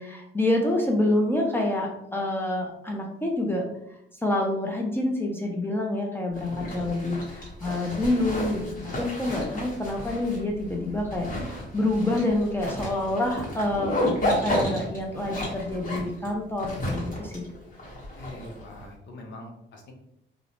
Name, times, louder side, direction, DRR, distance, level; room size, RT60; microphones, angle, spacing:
voice 1, 0.0-3.7 4.2-17.4, left 1 dB, 10° left, 0 dB, 0.5 m, -27 dB
Zipper (clothing), 6.3-18.8, left 1 dB, 45° left, 1.2 m, -32 dB
voice 2, 18.1-19.9, left 1 dB, 65° left, 1 dB, 0.7 m, -43 dB
2.5 x 2.1 x 2.9 m, 0.77 s
cardioid pair, 90°, 20 cm